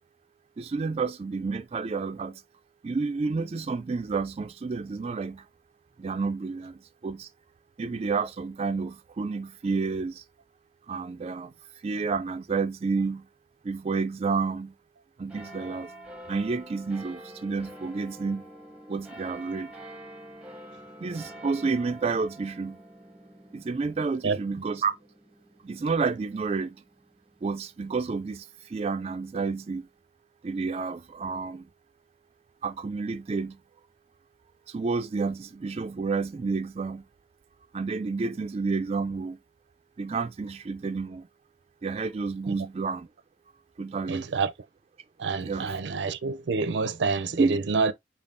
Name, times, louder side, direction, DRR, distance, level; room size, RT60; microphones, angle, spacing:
voice 1, 0.6-2.4 2.8-5.5 6.0-7.3 7.8-10.2 10.9-11.5 11.8-13.3 13.6-14.7 15.2-15.9 16.3-18.5 18.9-19.7 21.0-22.8 23.5-24.9 25.6-26.8 27.4-29.9 30.4-31.7 32.6-33.6 34.7-37.0 37.7-39.4 40.0-41.3 41.8-43.1 43.8-44.3 45.4-45.8 47.4-47.6, right 4 dB, 35° right, 0.3 m, -30 dB
sound 1, 15.3-28.2 28.8-28.9, right 1 dB, 5° right, 0.7 m, -47 dB
voice 2, 44.1-44.5 45.2-47.9, right 4 dB, 85° right, 0.5 m, -27 dB
5.2 x 2.7 x 2.5 m
head